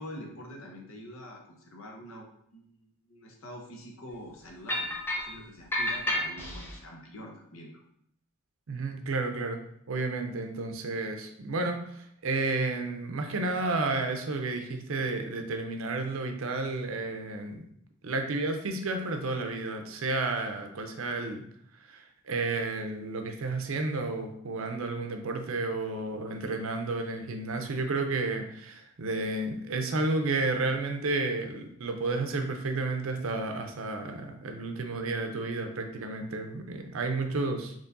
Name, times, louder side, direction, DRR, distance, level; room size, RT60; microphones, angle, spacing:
voice 1, 0.0-2.3 2.5-4.9 5.2-7.8, left 1 dB, 65° left, 1 dB, 0.8 m, -45 dB
sound 1, 4.7-5.3 5.7-6.8, left 1 dB, 10° left, 0.5 m, -30 dB
voice 2, 8.7-9.6 9.9-17.6 18.0-21.4 21.9-37.7, right 3 dB, 65° right, 5 dB, 0.5 m, -31 dB
4.5 x 3.0 x 2.6 m, 0.69 s
head